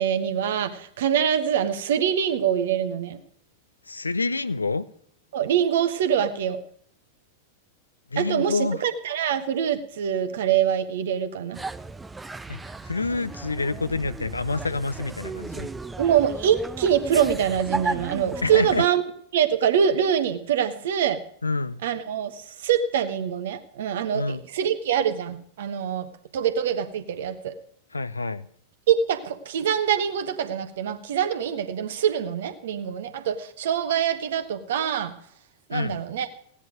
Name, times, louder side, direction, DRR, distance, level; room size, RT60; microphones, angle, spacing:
voice 1, 0.0-3.2 5.3-6.6 8.2-11.6 16.0-19.0 19.3-21.2 21.8-27.5 28.9-35.1 35.7-36.3, right 9 dB, 60° right, 1.2 m, -24 dB
voice 2, 3.9-4.9 8.1-8.8 12.5-12.6 12.8-15.7 18.4-18.8 21.4-21.8 24.1-24.4 27.9-28.5 35.7-36.0, left 3 dB, 80° left, 0.5 m, -27 dB
sound 1, 11.5-18.9, right 3 dB, 10° right, 0.5 m, -35 dB
16.5 x 9.9 x 5.0 m
figure-of-eight pair, 90°, 0 cm